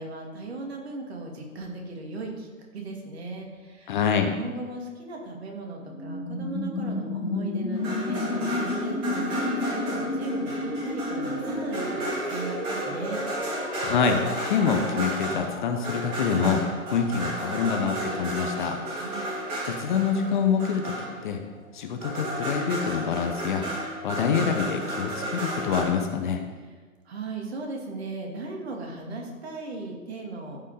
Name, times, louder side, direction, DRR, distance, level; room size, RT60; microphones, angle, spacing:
voice 1, 0.0-3.9 4.4-13.2 18.9-19.3 26.6-26.7 27.1-30.6, right 3 dB, 50° right, 1 dB, 2.5 m, -37 dB
voice 2, 3.9-4.3 13.8-16.6 16.9-18.8 19.6-20.9 21.2-21.4 21.7-23.7 24.0-26.4, left 6 dB, 35° left, 5 dB, 0.9 m, -26 dB
sound 1, 5.8-17.6, left 2 dB, 85° left, 2.5 m, -32 dB
sound 2, 7.7-21.6 22.0-25.8, right 1 dB, 30° right, 3.6 m, -33 dB
14.0 x 5.6 x 4.9 m, 1.4 s
figure-of-eight pair, 125°, 41 cm